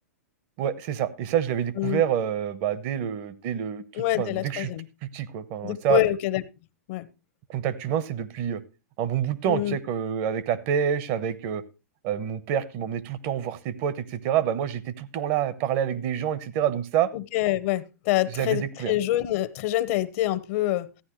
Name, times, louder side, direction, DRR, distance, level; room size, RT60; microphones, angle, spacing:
voice 1, 0.6-4.7 5.1-6.0 7.5-8.6 9.0-11.6 12.0-17.1 18.3-18.9, right 9 dB, 45° right, 16 dB, 1.0 m, -27 dB
voice 2, 3.9-4.8 5.6-6.4 6.9-7.1 9.5-9.8 17.1-20.9, left 14 dB, 55° left, 15 dB, 0.9 m, -26 dB
14.0 x 9.7 x 3.1 m, 0.28 s
hypercardioid pair, 125°, 9 cm